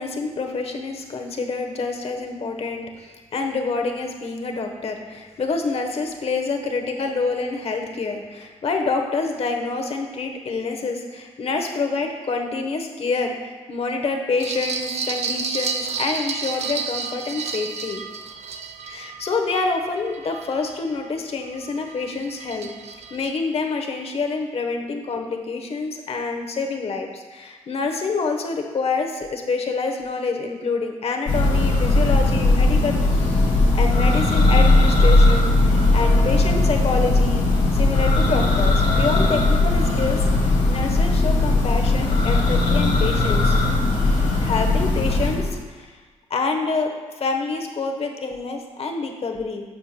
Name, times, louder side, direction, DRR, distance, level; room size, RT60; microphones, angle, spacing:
voice 1, 0.0-18.0 18.8-33.5 33.7-37.5 37.7-43.6 44.4-45.9 46.3-49.6, left 4 dB, 55° left, 4 dB, 1.0 m, -27 dB
sound 1, 14.4-21.1 21.5-23.3, right 5 dB, 60° right, 0.6 m, -31 dB
Church bell, 31.3-45.6, left 2 dB, 75° left, 1.4 m, -18 dB
11.0 x 6.9 x 2.2 m, 1.4 s
cardioid pair, 65°, 12 cm